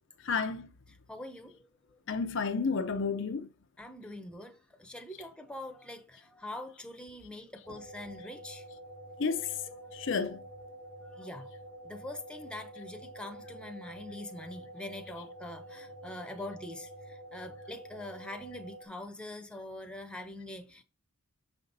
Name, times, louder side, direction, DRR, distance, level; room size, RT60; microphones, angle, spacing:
voice 1, 0.2-0.7 2.1-3.5 9.2-9.5 9.9-10.4, left 5 dB, 60° left, 0.6 m, -31 dB
voice 2, 0.9-2.0 3.8-8.7 9.7-10.3 10.7-11.5 11.8-20.8, left 1 dB, 5° left, 0.8 m, -44 dB
sound 1, 7.6-18.9, right 1 dB, 45° right, 1.9 m, -48 dB
6.7 x 5.3 x 4.0 m
head